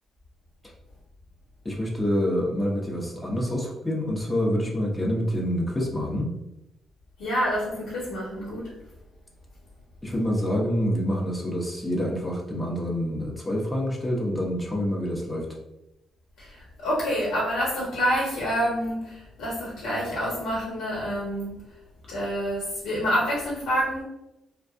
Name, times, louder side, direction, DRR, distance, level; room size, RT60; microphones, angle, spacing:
voice 1, 1.6-6.3 10.0-15.5, equal, 15° left, -3 dB, 0.8 m, -27 dB
voice 2, 7.2-8.7 16.8-19.1 19.4-21.5 22.1-24.0, equal, 90° left, -6 dB, 1.1 m, -27 dB
3.4 x 2.2 x 2.5 m, 0.91 s
cardioid pair, 90°, 0 cm